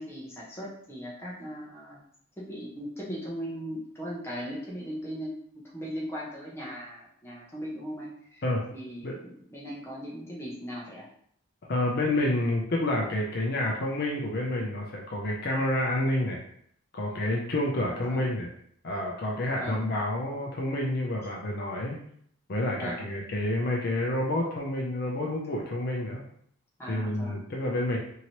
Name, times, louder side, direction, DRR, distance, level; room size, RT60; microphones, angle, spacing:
voice 1, 0.0-2.0 2.4-5.3 5.7-8.4 8.7-11.1 18.1-18.3 19.6-19.8 22.8-23.0 26.8-27.5, equal, 10° left, -5 dB, 0.7 m, -38 dB
voice 2, 11.7-16.4 16.9-18.5 18.8-22.0 22.5-26.2 26.9-28.0, left 1 dB, 45° left, -1 dB, 0.5 m, -29 dB
2.9 x 2.7 x 2.9 m, 0.65 s
head